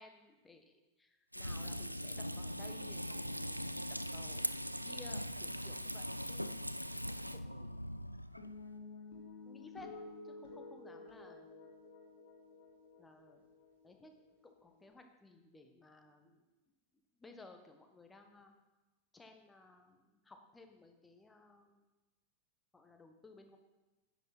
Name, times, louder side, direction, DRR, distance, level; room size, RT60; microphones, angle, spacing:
voice 1, 0.0-3.7 4.1-4.5 4.8-6.5 7.3-8.0 9.4-9.9 10.2-12.0 13.0-13.4 13.8-14.1 14.4-16.4 17.2-18.5 19.1-21.8 22.7-23.6, left 2 dB, 10° left, 5 dB, 1.3 m, -58 dB
Frying (food), 1.3-7.4, equal, 90° right, 0.3 m, -42 dB
sound 1, 1.4-8.7, equal, 90° left, 0.3 m, -44 dB
sound 2, 8.4-14.9, left 3 dB, 60° left, 2.2 m, -52 dB
9.9 x 8.4 x 4.3 m, 1.1 s
figure-of-eight pair, 90°, 0 cm